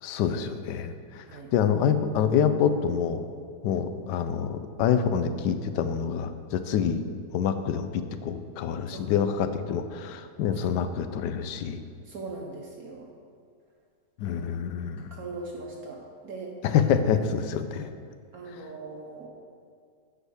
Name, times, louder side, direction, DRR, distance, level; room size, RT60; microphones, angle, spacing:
voice 1, 0.0-1.2 1.5-3.2 3.6-7.0 7.3-11.8 14.2-15.1 16.6-17.9, left 7 dB, 90° left, 10 dB, 1.2 m, -26 dB
voice 2, 12.0-13.1 14.2-14.5 15.0-16.6 18.3-19.3, right 3 dB, 65° right, -1 dB, 1.3 m, -40 dB
8.4 x 5.0 x 6.3 m, 2.2 s
omnidirectional pair, 1.8 m